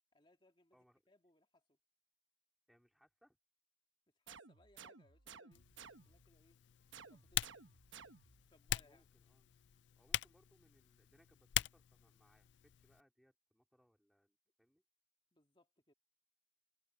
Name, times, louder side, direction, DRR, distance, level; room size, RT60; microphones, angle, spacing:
voice 1, 0.1-1.8 4.1-5.7 6.0-6.6 7.1-7.6 8.5-9.0 15.3-15.9, left 1 dB, 25° left, 2.3 m, -71 dB
voice 2, 0.7-1.0 2.7-3.4 8.8-9.5 9.9-14.8, equal, ahead, 4.2 m, -73 dB
sound 1, 4.3-6.3 6.9-8.5, right 6 dB, 75° right, 1.2 m, -57 dB
Acoustic guitar, 4.7-12.7, left 2 dB, 85° left, 6.7 m, -86 dB
Typing, 5.5-13.0, left 13 dB, 65° left, 0.4 m, -44 dB
head